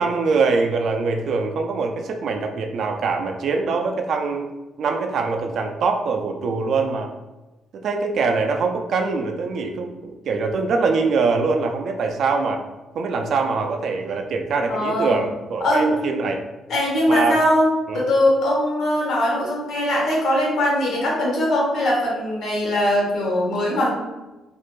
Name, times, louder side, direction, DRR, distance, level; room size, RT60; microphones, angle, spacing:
voice 1, 0.0-4.5 4.8-7.1 7.7-12.6 12.9-16.4 17.1-17.3 17.9-18.0, right 4 dB, 65° right, 4 dB, 0.3 m, -23 dB
voice 2, 14.7-15.2 15.6-15.9 16.7-23.9, left 1 dB, 70° left, -4 dB, 1.0 m, -21 dB
2.5 x 2.1 x 3.0 m, 1.1 s
cardioid pair, 90°, 0 cm